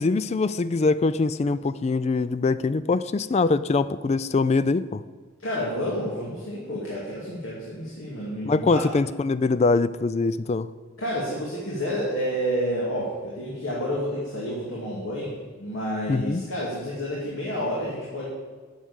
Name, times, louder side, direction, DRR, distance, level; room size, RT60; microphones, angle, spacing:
voice 1, 0.0-5.0 8.5-10.7 16.1-16.5, left 3 dB, 30° left, 15 dB, 0.3 m, -23 dB
voice 2, 5.4-8.9 11.0-18.3, equal, 70° left, -5 dB, 2.2 m, -30 dB
9.2 x 6.5 x 8.1 m, 1.4 s
head